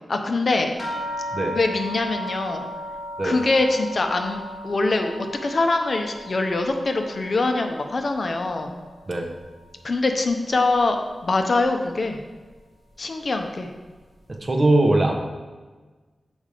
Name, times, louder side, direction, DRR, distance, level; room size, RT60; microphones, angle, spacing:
voice 1, 0.1-0.7 1.5-2.7 3.2-8.8 9.8-11.0 11.2-12.2 13.0-13.7, left 3 dB, 55° left, 5 dB, 0.7 m, -23 dB
sound 1, 0.8-9.6 9.9-10.8 11.6-11.7 12.1-12.2, equal, 25° left, 2.0 m, -37 dB
voice 2, 14.3-15.2, right 2 dB, 35° right, 3 dB, 1.0 m, -20 dB
7.2 x 5.0 x 5.0 m, 1.3 s
wide cardioid pair, 85°, 0 cm